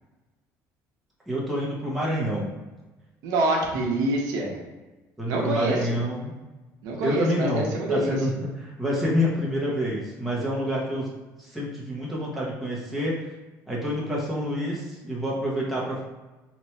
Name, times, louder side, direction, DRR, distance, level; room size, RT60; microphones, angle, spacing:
voice 1, 1.3-2.5 5.2-6.3 7.0-8.3 8.6-11.1 11.4-13.3 13.7-16.0, equal, ahead, -6 dB, 0.6 m, -27 dB
voice 2, 3.2-4.6 5.3-5.9 6.8-8.2, right 2 dB, 65° right, -1 dB, 0.8 m, -26 dB
3.0 x 2.2 x 4.2 m, 1.2 s
cardioid pair, 175°, 7 cm